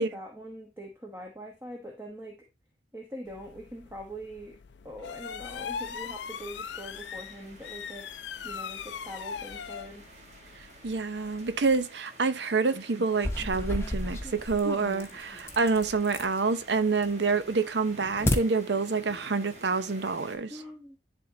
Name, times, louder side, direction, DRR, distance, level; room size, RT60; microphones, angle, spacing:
voice 1, 0.0-2.4 2.9-4.6 4.8-8.1 8.4-10.1 20.5-21.0, equal, 15° right, 1.1 m, -43 dB
sound 1, 3.3-11.9, left 7 dB, 75° left, 0.4 m, -41 dB
sound 2, 5.4-20.4, right 2 dB, 40° right, 1.6 m, -51 dB
voice 2, 10.8-20.5, right 4 dB, 70° right, 0.7 m, -27 dB
sound 3, 13.1-16.4 16.8-17.3 17.7-18.4, left 1 dB, 15° left, 0.9 m, -32 dB
10.5 x 3.7 x 2.8 m
head